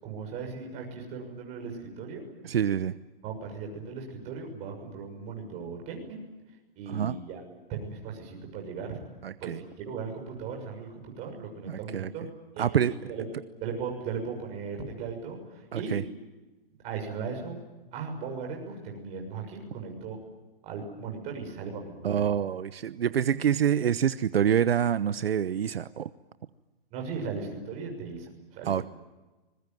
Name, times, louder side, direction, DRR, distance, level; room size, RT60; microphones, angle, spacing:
voice 1, 0.0-2.2 3.2-6.2 6.7-7.4 7.7-9.0 9.4-12.3 12.5-13.3 13.6-16.0 16.8-17.6 17.9-20.2 20.6-22.3 26.9-28.9, right 5 dB, 25° right, 2 dB, 6.7 m, -37 dB
voice 2, 2.4-2.9 6.9-7.2 9.2-9.6 11.7-12.1 12.6-12.9 15.7-16.0 22.0-26.1 28.7-28.9, right 9 dB, 75° right, 14 dB, 1.0 m, -26 dB
26.5 x 22.0 x 9.3 m, 1.1 s
hypercardioid pair, 160°, 30 cm